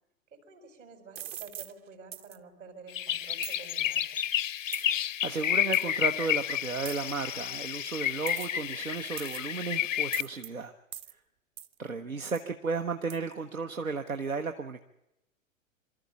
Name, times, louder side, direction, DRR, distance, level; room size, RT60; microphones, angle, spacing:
voice 1, 0.3-4.2 11.9-12.3, right 4 dB, 65° right, 7 dB, 4.4 m, -50 dB
sound 1, 1.2-1.7 2.1-2.4 3.4-3.6 4.7-5.0 5.7-5.9 6.9-7.2 8.3-8.7 9.2-9.6 10.1-10.5 10.9-11.1 11.6-11.7 12.3-12.5 13.1-13.2, right 11 dB, 50° right, 1.0 m, -41 dB
sound 2, 2.9-10.2, left 11 dB, 70° left, 0.6 m, -30 dB
voice 2, 4.9-10.7 11.8-14.8, right 4 dB, 85° right, 6 dB, 1.1 m, -34 dB
24.0 x 13.5 x 8.3 m, 0.90 s
figure-of-eight pair, 105°, 40 cm